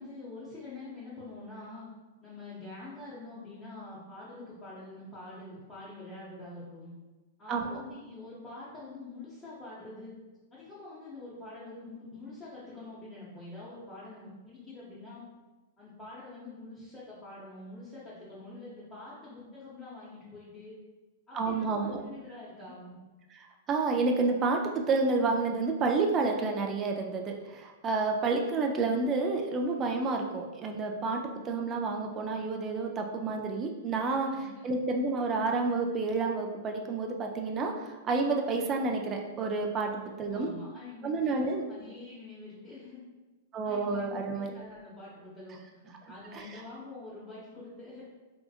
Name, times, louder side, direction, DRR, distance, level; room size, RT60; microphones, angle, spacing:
voice 1, 0.0-1.9 2.2-6.9 7.4-10.1 10.5-15.2 15.8-20.7 21.3-23.0 34.2-34.4 40.2-43.0 43.6-48.0, left 2 dB, 15° left, -10 dB, 0.7 m, -46 dB
voice 2, 7.5-7.8 21.3-22.0 23.3-34.4 34.6-40.5 41.0-41.7 43.5-44.5 46.3-46.4, right 3 dB, 30° right, 2 dB, 0.3 m, -30 dB
2.7 x 2.5 x 2.3 m, 1.2 s
hypercardioid pair, 120°, 0 cm